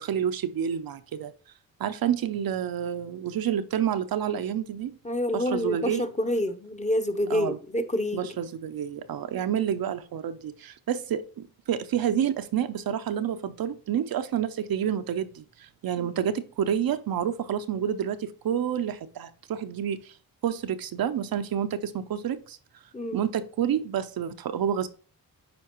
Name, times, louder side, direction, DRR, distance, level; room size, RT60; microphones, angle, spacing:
voice 1, 0.0-1.3 1.8-4.9 5.3-6.1 7.3-7.6 8.1-20.1 20.4-22.6 23.1-24.9, right 9 dB, 70° right, 0.6 m, -29 dB
voice 2, 5.0-8.2 16.0-16.1 22.9-23.2, left 1 dB, 20° left, 0.8 m, -27 dB
9.5 x 4.4 x 3.0 m
cardioid pair, 80°, 37 cm